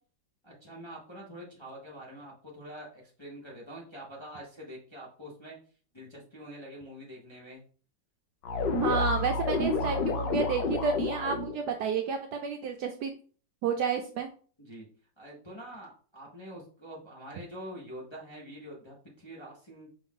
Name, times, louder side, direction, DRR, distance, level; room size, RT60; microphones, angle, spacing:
voice 1, 0.4-5.6 5.9-7.6 14.6-14.9 15.2-19.9, equal, 20° left, -4 dB, 0.8 m, -45 dB
sound 1, 8.4-11.6, left 3 dB, 70° left, 1.5 m, -29 dB
voice 2, 8.8-13.1 13.6-14.3, right 5 dB, 75° right, 5 dB, 1.0 m, -30 dB
5.4 x 2.6 x 3.6 m, 0.41 s
omnidirectional pair, 2.1 m